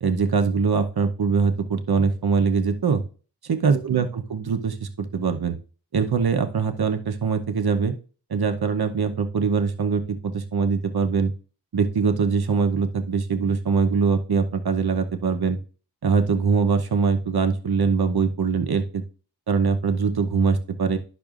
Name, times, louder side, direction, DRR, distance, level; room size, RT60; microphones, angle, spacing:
voice 1, 0.0-3.0 3.5-5.6 5.9-7.9 8.3-11.3 11.7-15.6 16.0-19.0 19.5-21.0, right 5 dB, 65° right, 7 dB, 0.9 m, -22 dB
10.5 x 6.0 x 2.5 m, 0.37 s
wide cardioid pair, 75°, 40 cm